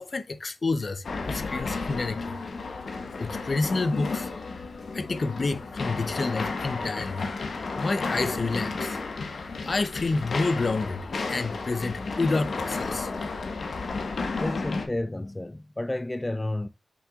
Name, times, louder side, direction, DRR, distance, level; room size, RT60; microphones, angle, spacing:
voice 1, 0.0-2.3 3.2-4.3 4.9-7.3 7.8-9.0 9.6-13.1, left 3 dB, 50° left, 0.8 m, -29 dB
sound 1, 1.0-14.9, left 4 dB, 70° left, 1.4 m, -32 dB
voice 2, 14.4-16.7, left 1 dB, 20° left, 0.5 m, -31 dB
7.1 x 5.6 x 2.4 m
cardioid pair, 55°, 0 cm